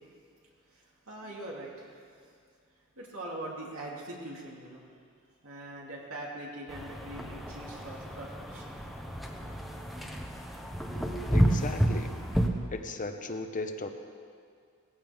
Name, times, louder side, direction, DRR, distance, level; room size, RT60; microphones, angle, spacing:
voice 1, 0.7-2.0 3.0-4.8 5.4-8.8, right 1 dB, 80° right, -3 dB, 2.8 m, -42 dB
sound 1, 6.7-12.5, equal, ahead, 1.0 m, -30 dB
voice 2, 11.3-12.1 12.7-13.9, left 3 dB, 40° left, 6 dB, 0.9 m, -36 dB
18.0 x 15.0 x 3.6 m, 2.2 s
head